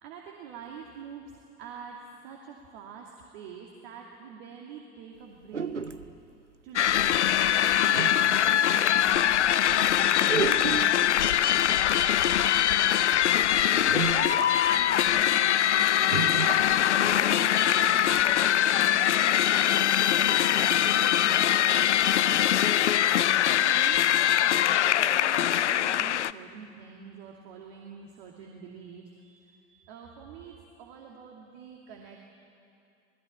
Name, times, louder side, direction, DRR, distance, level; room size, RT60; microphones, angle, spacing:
voice 1, 0.0-2.0 2.2-5.7 6.6-12.1 13.4-22.8 23.6-32.2, right 6 dB, 60° right, 0 dB, 2.6 m, -46 dB
sound 1, 5.5-6.1 7.4-7.5 7.9-8.5 9.1-9.2 9.5-9.7 10.3-11.1 12.4-12.5 13.1-13.2 13.9-14.6 14.8-14.9 15.2-15.3 16.0-16.6, right 5 dB, 85° right, 0.9 m, -31 dB
sound 2, 6.8-26.3, left 11 dB, 80° left, 0.5 m, -23 dB
27.5 x 20.0 x 8.7 m, 2.5 s
figure-of-eight pair, 70°, 35 cm